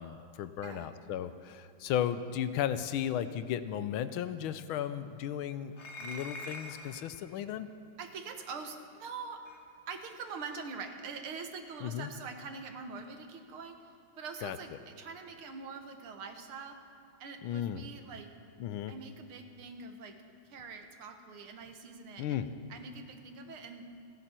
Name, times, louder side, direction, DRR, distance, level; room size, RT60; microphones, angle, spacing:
voice 1, 0.0-5.7 6.0-7.7 11.8-12.1 14.4-14.6 17.4-17.8 18.6-18.9 22.2-22.5, left 10 dB, 80° left, 12 dB, 1.5 m, -35 dB
sound 1, 5.7-7.1 8.4-8.5 9.4-9.6, left 1 dB, 40° left, 1.3 m, -44 dB
voice 2, 8.0-9.4 9.9-16.8 17.2-18.3 18.9-20.2 20.4-23.8, right 5 dB, 85° right, 6 dB, 2.2 m, -44 dB
29.0 x 11.0 x 4.5 m, 2.4 s
omnidirectional pair, 2.3 m